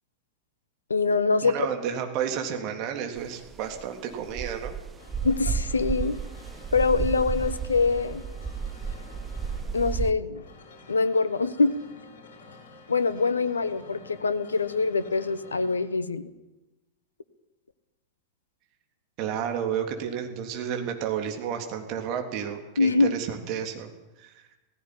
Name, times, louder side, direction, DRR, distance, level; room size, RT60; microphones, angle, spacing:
voice 1, 0.9-1.7 5.2-6.2 6.7-8.2 9.7-10.4 10.9-11.7 12.9-16.3 22.8-23.1, left 4 dB, 75° left, 14 dB, 1.0 m, -24 dB
voice 2, 1.4-4.7 19.2-23.9 24.2-24.3, right 8 dB, 40° right, 4 dB, 3.3 m, -31 dB
sound 1, 3.2-10.1, right 6 dB, 20° right, 1.0 m, -33 dB
sound 2, 5.0-15.8, left 3 dB, 60° left, 6.2 m, -49 dB
16.5 x 16.0 x 9.9 m, 1.1 s
figure-of-eight pair, 90°, 0 cm